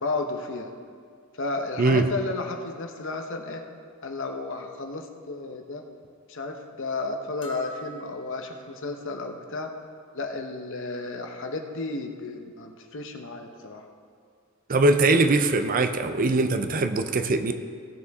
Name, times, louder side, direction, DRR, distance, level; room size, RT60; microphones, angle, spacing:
voice 1, 0.0-0.7 1.4-3.6 4.0-5.8 6.3-9.7 10.1-13.8, left 3 dB, 60° left, 4 dB, 0.9 m, -33 dB
sound 1, 7.4-8.8, equal, 25° left, 1.0 m, -43 dB
voice 2, 14.7-17.5, right 2 dB, 40° right, 8 dB, 0.5 m, -21 dB
16.5 x 6.8 x 3.6 m, 2.2 s
head